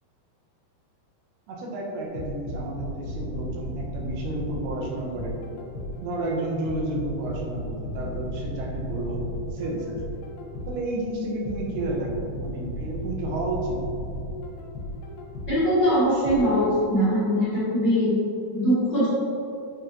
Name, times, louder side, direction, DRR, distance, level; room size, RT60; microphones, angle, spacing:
voice 1, 1.5-5.4 6.0-9.2 9.5-10.0 10.7-13.8, right 2 dB, 80° right, -2 dB, 2.8 m, -31 dB
sound 1, 2.2-6.1 6.7-10.9 11.5-15.7 16.3-16.4, equal, 85° left, 2.9 m, -34 dB
voice 2, 15.5-18.2 18.5-19.1, equal, 65° left, -12 dB, 1.1 m, -22 dB
7.5 x 5.0 x 2.9 m, 2.7 s
omnidirectional pair, 4.7 m